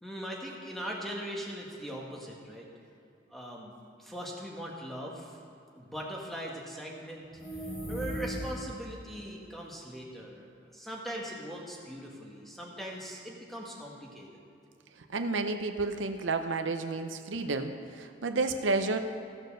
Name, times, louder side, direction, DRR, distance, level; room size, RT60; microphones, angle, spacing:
voice 1, 0.0-2.7 3.3-3.7 4.0-5.4 5.7-7.3 7.9-14.4, equal, ahead, -2 dB, 1.5 m, -40 dB
sound 1, 7.3-8.8, equal, 35° left, 3.0 m, -37 dB
voice 2, 15.1-19.0, right 3 dB, 85° right, 7 dB, 0.6 m, -31 dB
14.5 x 6.7 x 6.5 m, 2.6 s
head